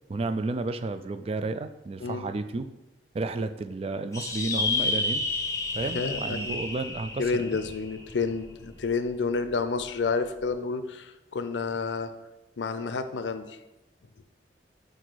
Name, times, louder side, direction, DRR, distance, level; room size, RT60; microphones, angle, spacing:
voice 1, 0.1-2.7 3.1-5.3 5.7-7.6, right 3 dB, 35° right, 10 dB, 0.3 m, -32 dB
voice 2, 2.0-2.3 5.9-6.6 7.2-12.1 12.6-13.6, left 4 dB, 80° left, 10 dB, 0.5 m, -30 dB
sound 1, 4.1-8.9, left 3 dB, 15° left, 0.6 m, -31 dB
7.8 x 2.7 x 4.6 m, 0.97 s
head